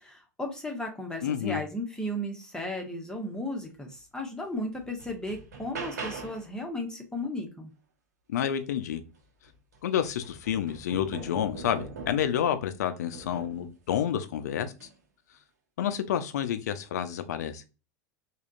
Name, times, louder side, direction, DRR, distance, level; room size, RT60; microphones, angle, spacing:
voice 1, 0.0-7.7, left 1 dB, 10° left, 1 dB, 0.8 m, -35 dB
voice 2, 1.2-1.6 8.3-9.0 9.8-14.9 15.8-17.6, left 9 dB, 70° left, 10 dB, 0.4 m, -29 dB
sound 1, 4.2-4.3 4.7-6.5 8.9-9.0 9.4-12.4 13.1-13.7 14.7-15.0, right 4 dB, 75° right, 0.7 m, -42 dB
3.4 x 2.2 x 2.5 m, 0.31 s
figure-of-eight pair, 85°, 9 cm